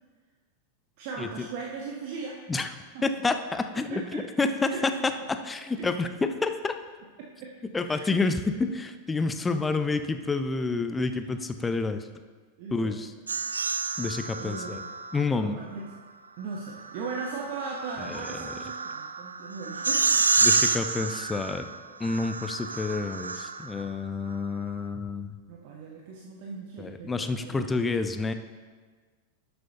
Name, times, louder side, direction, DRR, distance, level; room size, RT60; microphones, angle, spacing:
voice 1, 1.0-3.0 3.7-4.9 5.8-5.9 7.2-7.5 7.8-8.2 12.6-13.0 13.9-14.1 14.4-14.8 15.4-15.9 16.4-20.3 25.5-27.9, right 4 dB, 50° right, 0 dB, 0.8 m, -39 dB
voice 2, 3.0-6.7 7.7-12.1 12.7-13.1 14.0-14.8 15.1-15.6 18.0-18.5 20.4-21.7 22.0-25.4 26.8-28.3, left 3 dB, 15° left, 8 dB, 0.5 m, -29 dB
sound 1, 13.3-15.2 16.7-23.9, right 4 dB, 75° right, 0.3 m, -29 dB
11.5 x 7.7 x 2.8 m, 1.5 s
figure-of-eight pair, 90°, 0 cm